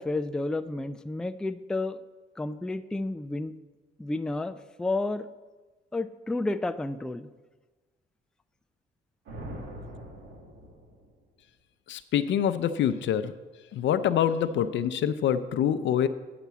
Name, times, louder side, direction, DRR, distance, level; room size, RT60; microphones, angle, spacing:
voice 1, 0.0-2.0 2.4-3.5 4.0-5.3 5.9-7.3, left 2 dB, 5° left, 11 dB, 0.3 m, -31 dB
sound 1, 9.3-11.2, right 1 dB, 80° right, 2.1 m, -42 dB
voice 2, 11.9-13.3 13.7-16.1, left 9 dB, 70° left, 12 dB, 0.6 m, -25 dB
9.3 x 6.0 x 6.9 m, 1.3 s
cardioid pair, 90°, 20 cm